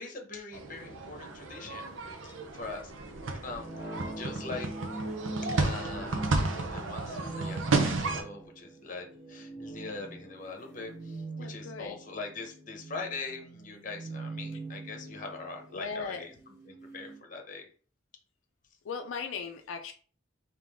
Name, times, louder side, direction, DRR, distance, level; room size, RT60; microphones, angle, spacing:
voice 1, 0.0-2.9 3.4-4.7 5.4-16.3 16.7-17.7, left 3 dB, 40° left, 3 dB, 0.9 m, -42 dB
sound 1, 0.5-8.2, right 3 dB, 90° right, 0.7 m, -32 dB
sound 2, 1.8-17.2, right 2 dB, 15° right, 1.2 m, -43 dB
voice 2, 11.4-12.0 15.7-16.3 18.8-19.9, left 5 dB, 85° left, 4 dB, 0.4 m, -38 dB
3.7 x 2.9 x 3.4 m, 0.42 s
head